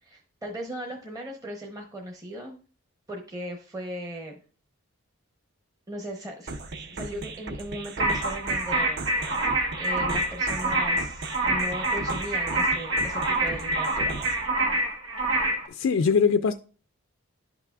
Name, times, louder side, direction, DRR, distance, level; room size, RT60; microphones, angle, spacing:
voice 1, 0.0-2.6 3.1-4.4 5.9-9.5 9.8-14.3, equal, 15° right, 1 dB, 0.8 m, -38 dB
sound 1, 6.5-14.5, right 3 dB, 50° right, 0.6 m, -37 dB
sound 2, 8.0-15.7, right 2 dB, 70° right, 1.4 m, -26 dB
voice 2, 15.7-16.5, left 5 dB, 65° left, 9 dB, 0.3 m, -22 dB
11.0 x 5.8 x 2.3 m, 0.37 s
head